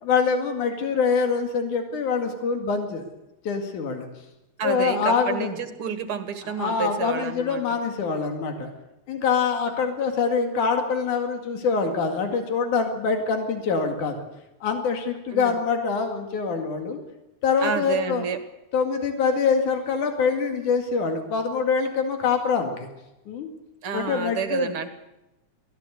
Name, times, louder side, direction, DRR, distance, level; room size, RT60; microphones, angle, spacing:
voice 1, 0.0-3.1 3.5-4.1 4.6-5.5 6.6-8.7 9.1-14.2 14.6-17.0 17.4-18.2 18.7-22.9 23.3-23.5 23.9-24.7, left 5 dB, 90° left, 4 dB, 3.7 m, -24 dB
voice 2, 4.6-7.8 15.3-15.6 17.6-18.4 23.8-24.9, right 6 dB, 50° right, 9 dB, 2.3 m, -29 dB
23.5 x 16.5 x 8.2 m, 0.95 s
omnidirectional pair, 3.4 m